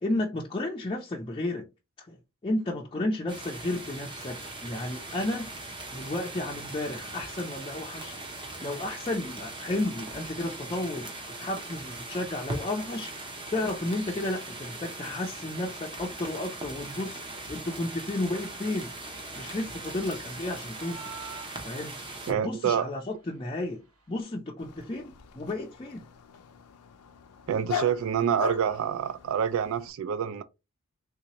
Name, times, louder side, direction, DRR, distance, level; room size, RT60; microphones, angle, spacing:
voice 1, 0.0-1.7 2.0-2.2 2.4-5.6 5.9-8.2 8.6-11.1 11.4-18.9 19.4-21.1 21.6-21.9 22.3-26.1, left 1 dB, 25° left, 0.4 m, -32 dB
sound 1, 3.3-22.3, right 2 dB, 20° right, 0.7 m, -40 dB
sound 2, 20.8-22.2, right 6 dB, 85° right, 1.9 m, -44 dB
voice 2, 22.3-22.9 27.5-30.4, right 8 dB, 60° right, 0.3 m, -27 dB
Dog, 24.6-29.9, left 7 dB, 90° left, 0.5 m, -39 dB
3.5 x 2.8 x 2.9 m
head